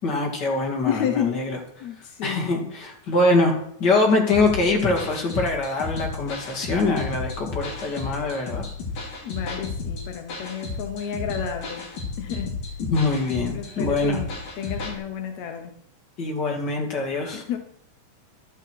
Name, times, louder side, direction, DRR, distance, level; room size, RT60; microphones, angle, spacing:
voice 1, 0.0-1.6 2.2-8.7 12.8-14.2 16.2-17.4, left 2 dB, 30° left, 0 dB, 2.7 m, -23 dB
voice 2, 0.8-1.4 1.8-2.7 9.2-11.9 12.2-12.5 13.5-15.7 17.3-17.6, left 8 dB, 80° left, 4 dB, 1.6 m, -31 dB
sound 1, 4.3-15.0, left 4 dB, 50° left, 4.8 m, -33 dB
12.5 x 12.0 x 4.7 m, 0.67 s
omnidirectional pair, 4.6 m